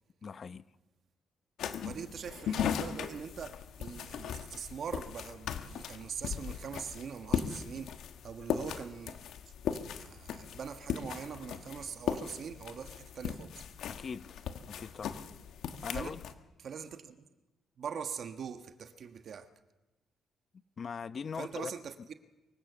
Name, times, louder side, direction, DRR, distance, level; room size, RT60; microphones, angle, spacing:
voice 1, 0.2-0.6 13.9-14.4 14.7-15.2 15.8-16.2 20.8-21.7, left 6 dB, 45° left, 0.8 m, -40 dB
sound 1, 1.6-16.3, left 8 dB, 75° left, 1.3 m, -38 dB
voice 2, 1.8-8.0 8.2-9.2 9.8-13.6 15.9-16.2 16.6-17.2 17.8-19.5 21.4-22.1, right 7 dB, 60° right, 1.3 m, -42 dB
24.0 x 16.5 x 6.9 m
cardioid pair, 90°, 0 cm